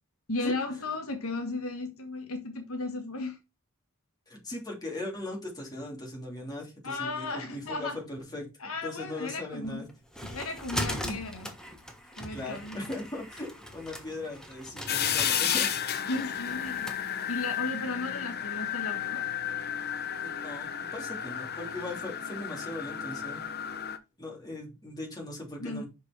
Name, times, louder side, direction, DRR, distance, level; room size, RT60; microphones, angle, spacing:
voice 1, 0.3-3.4 6.8-8.0 8.6-9.8 10.3-11.5 12.2-12.8 16.1-19.3 25.6-25.8, left 2 dB, 80° left, 1.5 m, -35 dB
voice 2, 4.3-9.9 11.0-11.2 12.3-15.7 20.2-23.4 24.2-25.9, left 1 dB, 20° left, 3.1 m, -39 dB
sound 1, 9.6-17.0, equal, 5° left, 1.2 m, -40 dB
sound 2, 14.9-24.0, left 9 dB, 50° left, 0.8 m, -32 dB
6.0 x 5.4 x 4.4 m
head